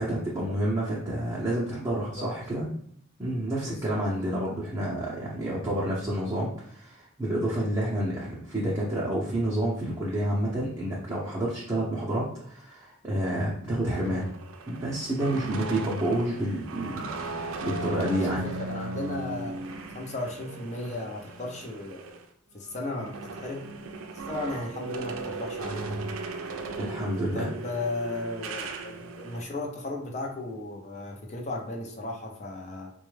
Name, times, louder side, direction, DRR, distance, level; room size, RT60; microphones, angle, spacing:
voice 1, 0.0-2.7 3.2-14.3 14.7-18.5 26.8-27.5, right 1 dB, 20° right, -7 dB, 0.6 m, -29 dB
voice 2, 3.7-4.0 18.0-19.6 19.9-22.2 22.5-23.7 24.3-26.1 27.3-32.9, left 2 dB, 35° left, 0 dB, 0.6 m, -35 dB
sound 1, 13.8-22.2 22.6-29.4, right 3 dB, 90° right, 0.5 m, -37 dB
4.2 x 2.3 x 3.2 m, 0.66 s
head